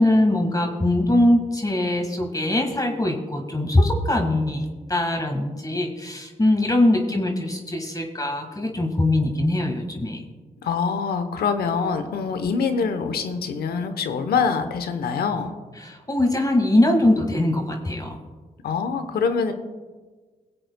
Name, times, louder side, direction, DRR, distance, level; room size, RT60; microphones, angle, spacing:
voice 1, 0.0-10.2 15.8-18.1, left 1 dB, 25° left, 2 dB, 1.6 m, -22 dB
voice 2, 10.6-15.5 18.6-19.5, left 5 dB, 80° left, 8 dB, 0.9 m, -24 dB
22.5 x 7.7 x 2.2 m, 1.4 s
supercardioid pair, 50°, 16 cm